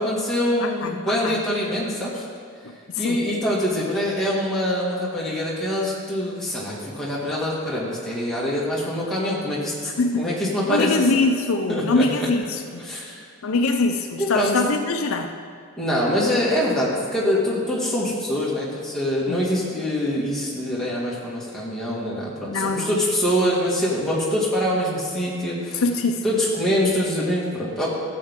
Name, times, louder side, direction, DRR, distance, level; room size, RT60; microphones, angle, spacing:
voice 1, 0.0-2.2 3.0-10.9 11.7-12.3 12.8-13.2 14.2-14.5 15.8-25.8 26.2-27.9, equal, ahead, -7 dB, 2.1 m, -24 dB
voice 2, 0.6-1.4 3.0-3.2 10.0-10.3 10.7-12.8 13.4-15.3 19.3-19.4 22.5-23.0 25.8-26.2, left 3 dB, 70° left, 6 dB, 0.5 m, -23 dB
13.5 x 7.7 x 3.7 m, 2.3 s
head